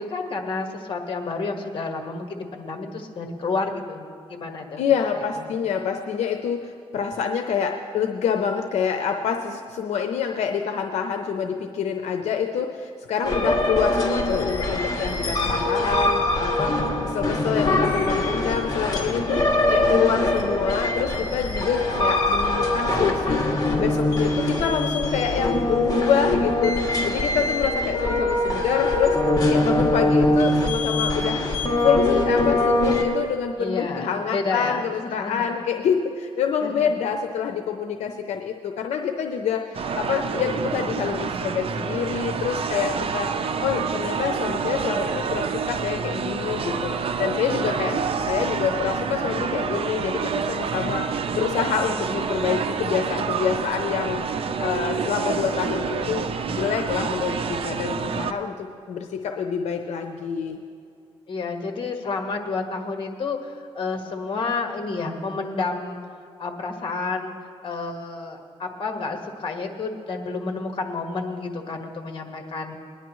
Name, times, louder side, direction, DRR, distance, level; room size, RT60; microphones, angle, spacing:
voice 1, 0.0-4.9 5.3-5.4 33.6-35.4 36.6-36.9 47.9-48.1 61.3-66.0 66.4-67.3 67.6-72.7, left 3 dB, 50° left, 4 dB, 1.6 m, -30 dB
voice 2, 4.8-19.4 19.7-23.4 23.8-29.2 29.5-31.4 31.8-43.3 43.6-48.0 48.3-51.1 51.3-60.6, left 7 dB, 85° left, 5 dB, 0.7 m, -26 dB
sound 1, 13.2-33.0, left 2 dB, 35° left, 2.3 m, -23 dB
sound 2, 39.7-58.3, right 6 dB, 55° right, 0.6 m, -28 dB
20.5 x 10.5 x 3.1 m, 2.5 s
cardioid pair, 90°, 11 cm